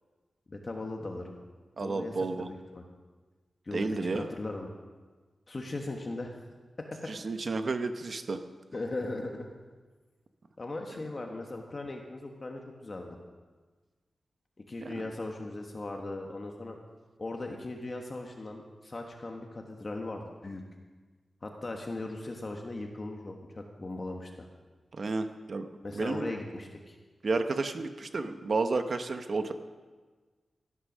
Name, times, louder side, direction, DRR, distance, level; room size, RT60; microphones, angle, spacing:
voice 1, 0.5-1.3 1.8-2.8 3.6-4.7 5.5-6.4 6.8-7.1 8.7-9.5 10.6-13.2 14.7-16.8 17.2-20.6 21.4-24.5 25.8-27.0, left 2 dB, 35° left, 2 dB, 1.3 m, -38 dB
voice 2, 1.8-2.5 3.7-4.3 7.1-8.4 14.8-15.0 24.9-25.7 25.9-26.3 27.2-29.5, right 3 dB, 50° right, 8 dB, 0.9 m, -31 dB
16.5 x 10.0 x 6.2 m, 1.4 s
wide cardioid pair, 130°, 0 cm